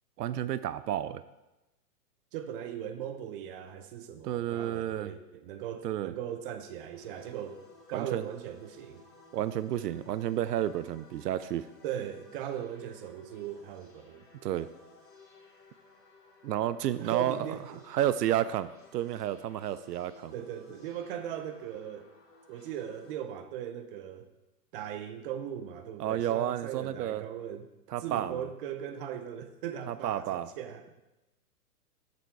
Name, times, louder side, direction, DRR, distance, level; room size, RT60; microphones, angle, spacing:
voice 1, 0.2-1.2 4.2-5.1 5.8-6.1 7.9-8.2 9.3-11.7 14.4-14.7 16.4-17.5 17.9-20.3 26.0-27.2 27.9-28.4 29.9-30.5, right 12 dB, 80° right, 15 dB, 0.5 m, -31 dB
voice 2, 2.3-7.6 7.9-9.0 11.8-14.3 17.0-17.8 20.3-22.1 22.5-24.3 24.7-27.7 28.0-30.8, right 9 dB, 35° right, 9 dB, 0.7 m, -39 dB
sound 1, 6.9-23.1, left 3 dB, 80° left, 2.9 m, -58 dB
7.0 x 6.9 x 4.6 m, 0.99 s
hypercardioid pair, 140°, 47 cm